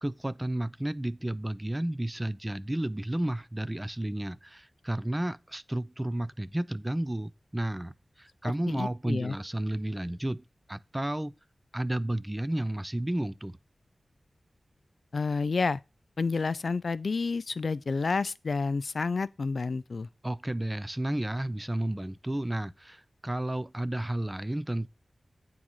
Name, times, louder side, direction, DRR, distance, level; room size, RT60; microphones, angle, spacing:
voice 1, 0.0-11.4 11.7-13.6 20.2-24.9, right 1 dB, 15° right, 0.4 m, -32 dB
voice 2, 8.7-9.4 15.1-15.8 16.2-20.1, left 4 dB, 65° left, 0.3 m, -29 dB
8.6 x 3.8 x 6.2 m
wide cardioid pair, 100°, 0 cm